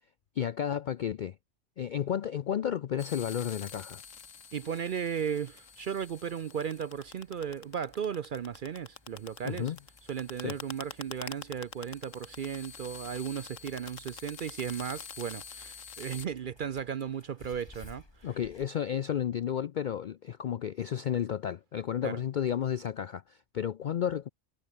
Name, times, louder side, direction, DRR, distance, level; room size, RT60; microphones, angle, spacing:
voice 1, 0.4-1.4 1.8-4.0 9.4-9.8 10.4-10.6 18.2-24.3, left 9 dB, 65° left, 0.4 m, -32 dB
sound 1, 3.0-16.3, left 7 dB, 80° left, 1.7 m, -47 dB
Clock, 3.6-18.7, left 2 dB, 20° left, 1.9 m, -59 dB
voice 2, 4.5-9.7 10.1-18.4 22.0-22.2, right 8 dB, 55° right, 0.6 m, -35 dB
omnidirectional pair, 1.3 m